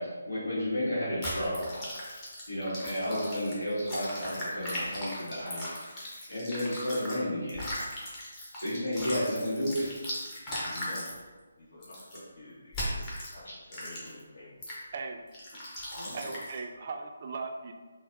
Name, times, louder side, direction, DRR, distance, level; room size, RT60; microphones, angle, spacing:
voice 1, 0.0-1.6 2.5-5.7 6.3-7.6 8.5-9.9 15.9-16.1, equal, 85° left, -8 dB, 1.0 m, -32 dB
sound 1, 1.2-7.2 7.5-11.2 11.8-12.2 12.7-13.3 13.7-14.2 14.6-14.8 15.3-16.6, equal, 20° left, 0.8 m, -38 dB
voice 2, 10.6-11.0 11.6-12.0 12.3-14.5, left 2 dB, 60° left, -10 dB, 1.1 m, -48 dB
voice 3, 16.1-17.7, right 4 dB, 45° right, 4 dB, 0.3 m, -38 dB
4.0 x 2.0 x 2.5 m, 1.3 s
figure-of-eight pair, 150°, 0 cm